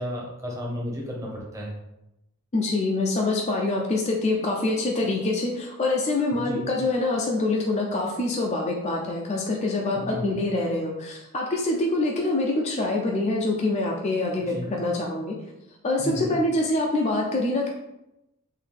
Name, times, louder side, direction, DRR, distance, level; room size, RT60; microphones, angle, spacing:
voice 1, 0.0-1.8 6.3-6.6 9.9-10.3 14.4-14.7 16.0-16.3, left 1 dB, 15° right, -3 dB, 0.8 m, -33 dB
voice 2, 2.5-15.3 15.8-17.7, left 2 dB, 30° left, -1 dB, 0.4 m, -25 dB
3.7 x 2.7 x 3.4 m, 0.89 s
head